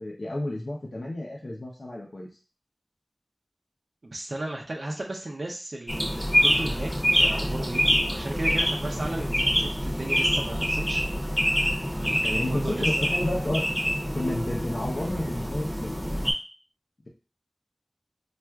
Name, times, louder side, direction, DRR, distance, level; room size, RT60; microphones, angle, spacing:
voice 1, 0.0-2.3 12.3-13.7 14.1-16.3, left 1 dB, 80° left, -3 dB, 0.7 m, -31 dB
voice 2, 4.0-7.9 8.1-11.0 12.0-13.1, right 2 dB, 85° right, -1 dB, 0.6 m, -35 dB
sound 1, 5.9-16.3, equal, 15° left, 0.8 m, -26 dB
4.3 x 2.4 x 2.3 m, 0.34 s
wide cardioid pair, 50°, 0 cm